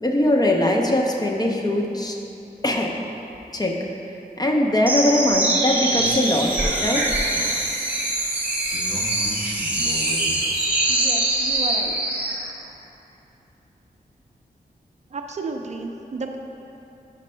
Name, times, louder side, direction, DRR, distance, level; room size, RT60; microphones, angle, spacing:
voice 1, 0.0-2.2 2.6-2.9 3.5-3.8 4.4-6.5 6.8-7.1, left 1 dB, 25° left, 0 dB, 0.5 m, -21 dB
sound 1, 4.8-12.4, right 1 dB, 10° right, 0.8 m, -23 dB
voice 2, 10.9-12.0 15.1-16.4, right 3 dB, 45° right, 3 dB, 0.4 m, -32 dB
5.3 x 5.2 x 5.5 m, 2.9 s
wide cardioid pair, 160°, 16 cm